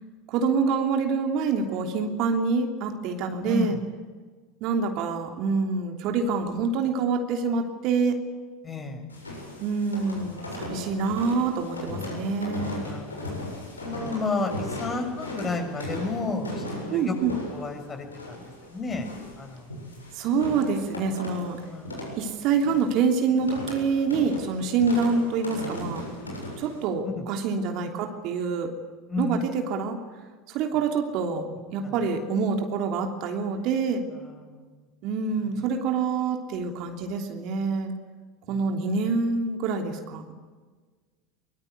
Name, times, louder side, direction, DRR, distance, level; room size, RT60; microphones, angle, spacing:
voice 1, 0.3-3.8 4.6-8.2 9.6-12.8 16.9-17.3 20.1-21.6 22.2-26.0 26.6-28.7 29.2-30.0 30.5-34.0 35.0-37.9 38.5-40.3, right 5 dB, 50° right, 4 dB, 3.1 m, -26 dB
voice 2, 3.4-3.8 8.6-9.0 12.8-13.2 13.8-19.1 19.4-19.6 21.7-22.1 27.1-27.2 29.1-29.4 31.8-31.9 34.1-34.6, left 3 dB, 25° left, 5 dB, 6.4 m, -32 dB
sound 1, 9.1-26.8, left 1 dB, 80° left, 7.4 m, -37 dB
23.5 x 23.5 x 9.5 m, 1.4 s
figure-of-eight pair, 75°, 0 cm